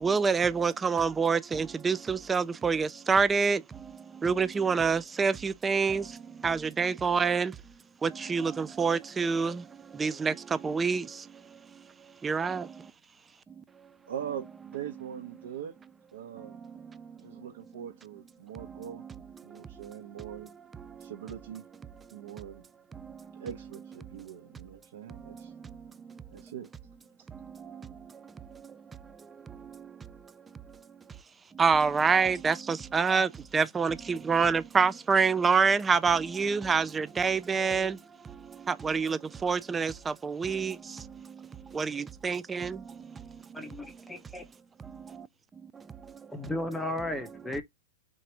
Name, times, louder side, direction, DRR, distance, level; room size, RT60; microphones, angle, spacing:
voice 1, 0.0-3.6 4.2-6.0 6.4-7.5 8.0-9.6 10.0-11.1 12.2-12.7 31.6-38.0 38.7-40.8 41.7-42.8, right 5 dB, 10° right, 0.3 m, -26 dB
voice 2, 14.1-15.7 16.1-16.6 17.2-19.0 19.4-20.5 21.0-21.6 22.1-22.6 23.4-25.5 26.3-26.7 27.2-27.3, right 9 dB, 65° right, 1.1 m, -41 dB
voice 3, 43.5-44.5 46.3-47.6, left 1 dB, 5° left, 0.7 m, -35 dB
4.0 x 2.9 x 4.5 m
hypercardioid pair, 150°, 0 cm